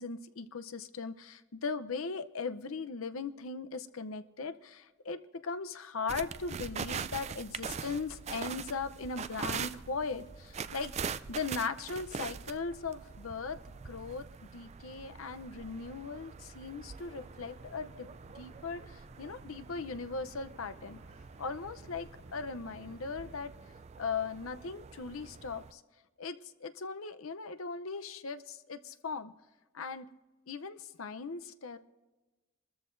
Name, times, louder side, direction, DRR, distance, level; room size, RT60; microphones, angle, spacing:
voice 1, 0.0-13.6 13.8-18.1 18.4-21.0 21.4-23.5 24.0-25.8 26.2-29.3 29.7-30.1 30.5-31.8, left 4 dB, 85° left, 11 dB, 0.7 m, -39 dB
sound 1, 6.1-25.7, right 6 dB, 30° right, 0.4 m, -43 dB
sound 2, 16.9-23.4, right 1 dB, 65° right, 1.7 m, -59 dB
27.0 x 13.5 x 2.6 m, 1.1 s
head